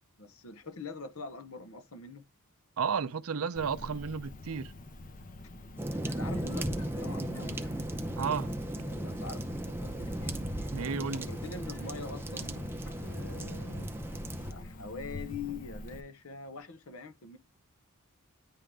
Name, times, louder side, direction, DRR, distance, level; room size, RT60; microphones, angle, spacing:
voice 1, 0.2-2.2 6.0-10.4 11.0-12.5 13.0-14.0 14.5-17.4, left 4 dB, 70° left, 0.9 m, -44 dB
voice 2, 2.8-4.7 8.2-8.5 10.7-11.3, right 6 dB, 75° right, 0.6 m, -32 dB
Cricket, 3.5-16.0, left 2 dB, 40° left, 0.8 m, -47 dB
sound 1, 5.7-14.2, left 2 dB, 90° left, 3.3 m, -58 dB
sound 2, 5.8-14.5, right 1 dB, 10° right, 0.6 m, -36 dB
10.0 x 3.8 x 3.4 m
head